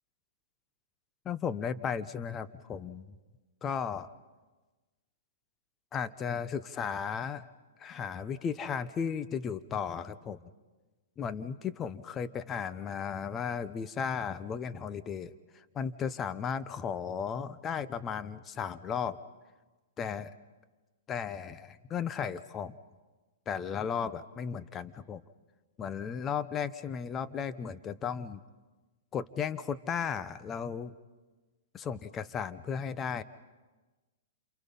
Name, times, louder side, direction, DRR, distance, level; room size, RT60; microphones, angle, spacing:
voice 1, 1.2-3.1 3.6-4.1 5.9-7.5 7.8-10.4 11.2-19.2 20.0-20.3 21.1-22.7 23.5-25.2 25.8-28.4 29.1-30.9 31.7-33.2, left 7 dB, 25° left, 13 dB, 1.0 m, -35 dB
29.0 x 28.0 x 5.5 m, 1.2 s
hypercardioid pair, 120°, 0 cm